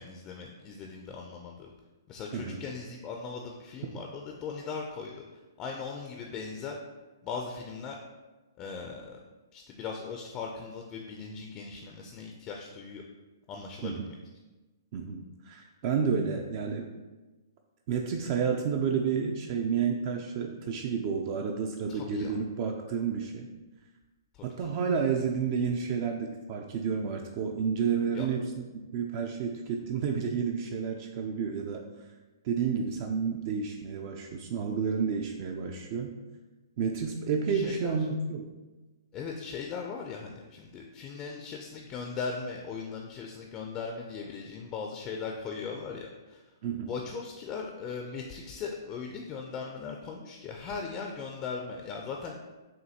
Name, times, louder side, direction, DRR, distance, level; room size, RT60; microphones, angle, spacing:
voice 1, 0.0-1.7 2.1-5.1 5.6-6.8 7.2-8.0 8.6-9.2 9.5-13.0 13.5-14.1 21.9-22.3 24.3-24.5 28.1-28.3 37.5-38.0 39.1-46.4 46.9-52.4, left 5 dB, 25° left, 1 dB, 0.4 m, -39 dB
voice 2, 14.9-16.9 17.9-23.5 24.4-28.5 28.9-31.9 32.4-36.1 36.8-38.5 46.6-46.9, right 6 dB, 40° right, 3 dB, 0.4 m, -30 dB
6.3 x 2.2 x 2.8 m, 1.2 s
hypercardioid pair, 135°, 2 cm